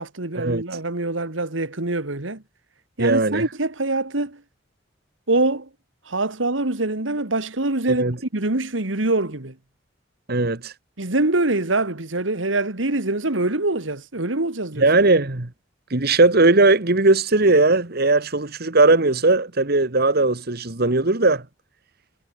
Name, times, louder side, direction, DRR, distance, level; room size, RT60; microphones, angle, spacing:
voice 1, 0.0-2.4 3.0-4.4 5.3-5.7 6.1-8.0 8.3-9.5 11.0-14.9, right 2 dB, 80° right, 2.2 m, -24 dB
voice 2, 3.0-3.4 7.9-8.2 10.3-10.7 14.8-15.5 15.9-21.4, right 2 dB, 55° right, 1.8 m, -18 dB
head